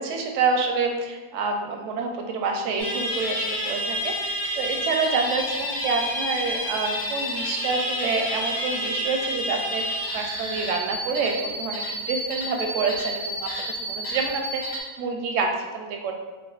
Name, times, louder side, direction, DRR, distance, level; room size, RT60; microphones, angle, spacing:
voice 1, 0.0-9.8 10.1-13.5 13.8-16.1, right 4 dB, 70° right, 2 dB, 0.8 m, -27 dB
sound 1, 2.8-14.8, equal, 90° left, 1.4 m, -30 dB
6.5 x 2.3 x 2.3 m, 1.4 s
omnidirectional pair, 1.6 m